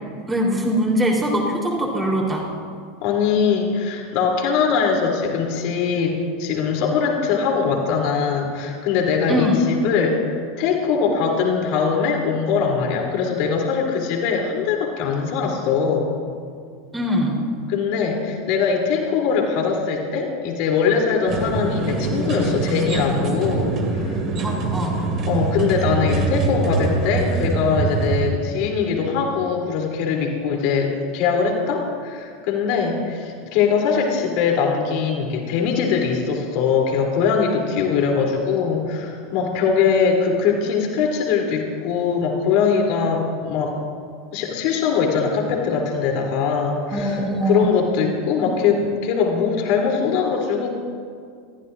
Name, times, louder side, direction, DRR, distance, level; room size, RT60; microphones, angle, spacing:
voice 1, 0.3-2.4 9.3-9.6 16.9-17.4 24.4-25.0 46.9-47.7, equal, 15° right, -1 dB, 3.7 m, -22 dB
voice 2, 3.0-16.1 17.7-24.2 25.2-43.8 44.3-50.7, left 6 dB, 50° left, 0 dB, 3.2 m, -21 dB
sound 1, 21.3-28.3, right 3 dB, 35° right, 2.3 m, -23 dB
29.0 x 14.5 x 2.6 m, 2.2 s
figure-of-eight pair, 80°, 0 cm